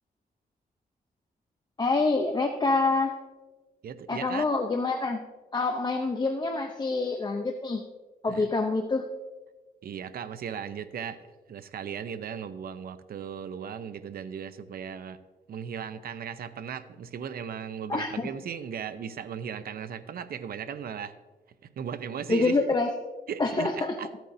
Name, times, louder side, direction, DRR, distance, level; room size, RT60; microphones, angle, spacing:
voice 1, 1.8-3.1 4.1-5.2 5.5-7.8 8.2-9.1 17.9-18.3 22.3-22.9 23.4-23.9, left 3 dB, 30° left, 3 dB, 0.7 m, -26 dB
voice 2, 3.8-4.5 8.3-8.5 9.8-15.2 15.5-21.1 21.8-22.6 23.3-24.1, right 7 dB, 75° right, 11 dB, 0.6 m, -37 dB
14.5 x 9.0 x 2.7 m, 1.2 s
wide cardioid pair, 125°, 16 cm